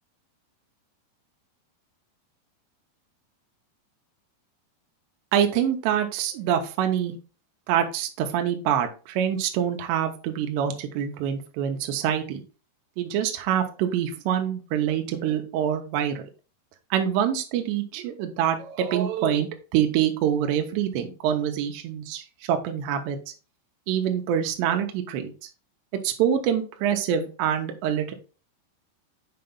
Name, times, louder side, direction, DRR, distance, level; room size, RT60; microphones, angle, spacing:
voice 1, 5.3-7.1 7.7-12.4 13.0-16.2 16.9-23.2 23.9-25.3 26.0-28.1, right 9 dB, 80° right, 5 dB, 2.7 m, -25 dB
7.7 x 5.3 x 2.3 m, 0.34 s
omnidirectional pair, 5.3 m